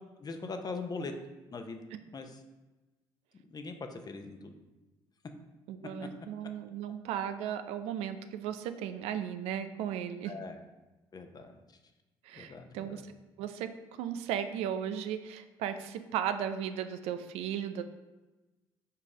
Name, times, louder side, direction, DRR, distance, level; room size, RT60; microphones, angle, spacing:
voice 1, 0.2-1.1 1.5-1.8 2.1-2.4 3.3-4.5 10.2-10.6 11.1-11.8 12.3-13.0, left 4 dB, 40° left, 6 dB, 0.9 m, -41 dB
voice 2, 5.7-10.3 12.2-17.8, right 9 dB, 75° right, 10 dB, 0.4 m, -36 dB
5.6 x 4.0 x 4.9 m, 1.1 s
hypercardioid pair, 55°, 11 cm